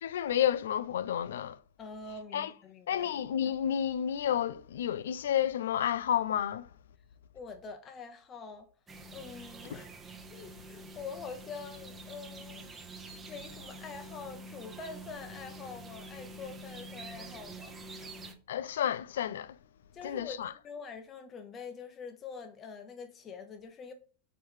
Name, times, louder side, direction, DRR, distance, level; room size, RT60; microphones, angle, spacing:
voice 1, 0.0-1.6 2.3-2.5 2.9-6.7 9.7-9.8 18.5-19.5 20.0-20.5, left 10 dB, 85° left, 0.3 m, -30 dB
voice 2, 1.8-3.1 7.3-8.7 9.1-9.9 10.3-12.6 13.3-18.2 19.9-23.9, left 5 dB, 30° left, 0.7 m, -45 dB
sound 1, 8.9-18.3, right 2 dB, 20° right, 0.8 m, -47 dB
4.5 x 3.1 x 3.6 m
hypercardioid pair, 120°, 0 cm